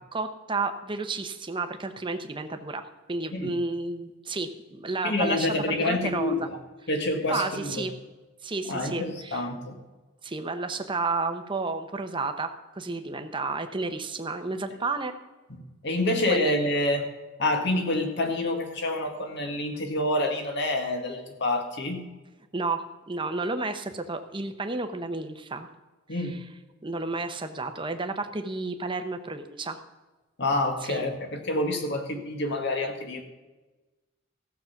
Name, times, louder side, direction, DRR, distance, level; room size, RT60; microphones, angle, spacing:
voice 1, 0.1-6.5 7.3-7.9 8.4-9.5 10.2-15.1 16.3-16.6 22.5-25.7 26.1-26.4 26.8-29.8 30.9-31.0, right 3 dB, 25° right, 7 dB, 0.9 m, -31 dB
voice 2, 5.0-6.6 6.9-7.8 8.7-9.8 15.8-17.0 17.4-22.1 26.1-26.4 30.4-33.2, left 1 dB, 60° left, 4 dB, 1.9 m, -27 dB
15.0 x 7.4 x 5.8 m, 1.2 s
head